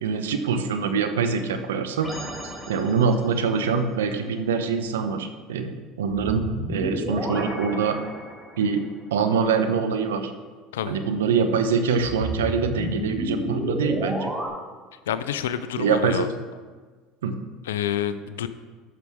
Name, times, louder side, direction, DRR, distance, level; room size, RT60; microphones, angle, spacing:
voice 1, 0.0-2.1 2.7-6.4 6.7-8.0 8.6-8.8 9.1-10.3 10.9-14.3 15.8-16.3 17.2-17.3, right 5 dB, 90° right, 8 dB, 0.8 m, -24 dB
sound 1, 2.0-3.4 6.1-8.8 12.0-14.5, equal, ahead, 2.4 m, -32 dB
voice 2, 15.1-16.3 17.7-18.5, left 10 dB, 85° left, 13 dB, 0.5 m, -28 dB
12.5 x 6.1 x 3.6 m, 1.4 s
hypercardioid pair, 85°, 0 cm